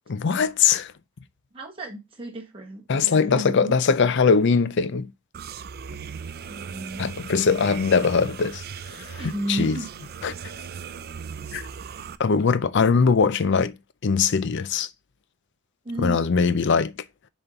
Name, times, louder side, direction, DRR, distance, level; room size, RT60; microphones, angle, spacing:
voice 1, 0.1-0.9 2.9-5.1 7.0-9.8 10.2-10.3 11.5-11.6 12.2-13.8 14.0-14.9 16.0-16.9, left 5 dB, 55° left, 0.5 m, -21 dB
voice 2, 1.5-3.7 6.5-7.1 9.2-9.9 12.8-13.3 15.8-16.2, right 1 dB, 25° right, 1.3 m, -33 dB
sound 1, 5.3-12.2, right 6 dB, 45° right, 0.4 m, -38 dB
6.9 x 4.3 x 3.9 m
head